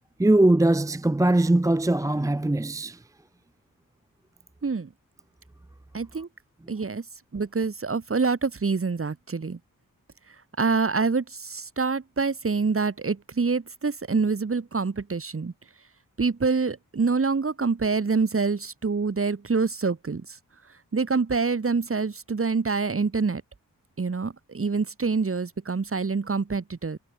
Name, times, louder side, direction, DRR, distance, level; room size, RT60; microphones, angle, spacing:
voice 1, 0.2-3.3 6.6-6.7, right 1 dB, 10° right, 0.7 m, -21 dB
voice 2, 5.9-6.3 6.7-7.0 7.3-9.6 10.6-15.5 16.2-20.4 20.9-23.4 24.0-27.0, right 4 dB, 40° right, 3.8 m, -26 dB
wide cardioid pair, 110°, 34 cm